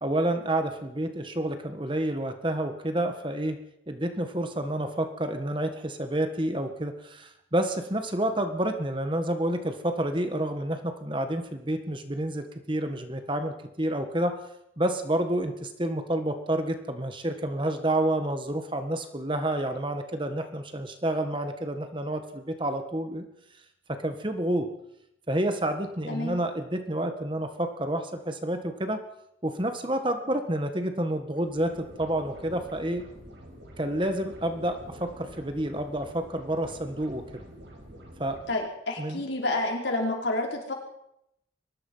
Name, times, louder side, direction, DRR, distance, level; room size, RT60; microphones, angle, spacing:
voice 1, 0.0-3.6 3.9-14.4 14.8-23.2 23.9-24.7 25.3-29.0 29.4-33.0 33.8-37.4 38.2-38.4 39.0-39.2, right 1 dB, 25° right, 7 dB, 1.7 m, -29 dB
voice 2, 26.1-26.4 38.5-40.7, left 2 dB, 70° left, 0 dB, 5.3 m, -29 dB
sound 1, 31.3-38.6, equal, 65° right, 5.6 m, -47 dB
23.0 x 19.5 x 5.7 m, 0.81 s
head